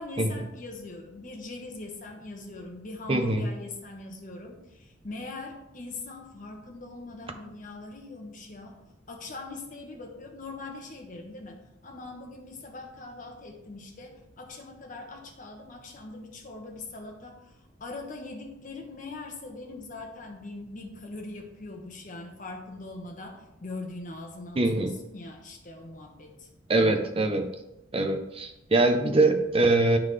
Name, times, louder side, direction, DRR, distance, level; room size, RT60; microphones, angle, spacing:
voice 1, 0.0-8.8 9.1-17.5 17.8-24.9 25.1-26.5, left 2 dB, 45° left, 2 dB, 1.1 m, -41 dB
voice 2, 3.1-3.5 24.6-25.0 26.7-27.5 27.9-30.0, right 2 dB, 30° right, 6 dB, 0.5 m, -23 dB
11.0 x 3.8 x 3.2 m, 0.90 s
head